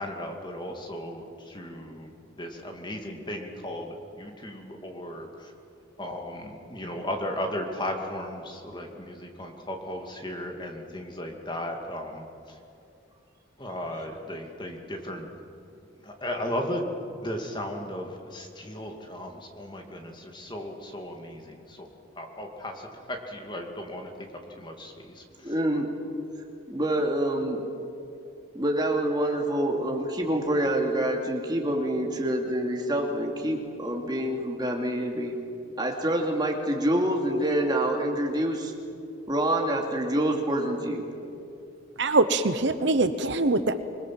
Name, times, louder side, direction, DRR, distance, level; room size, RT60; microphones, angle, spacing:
voice 1, 0.0-2.1 2.4-5.5 6.0-12.6 13.6-15.3 16.0-16.8 17.2-21.9 22.2-24.1 24.6-25.5, left 1 dB, 20° left, 2 dB, 2.4 m, -36 dB
voice 2, 25.4-25.9 26.7-27.6 28.5-35.4 35.8-38.7 39.3-41.0, right 1 dB, 20° right, 1 dB, 2.6 m, -26 dB
voice 3, 42.0-43.7, right 2 dB, 60° right, 10 dB, 0.9 m, -23 dB
27.0 x 21.0 x 7.6 m, 2.6 s
head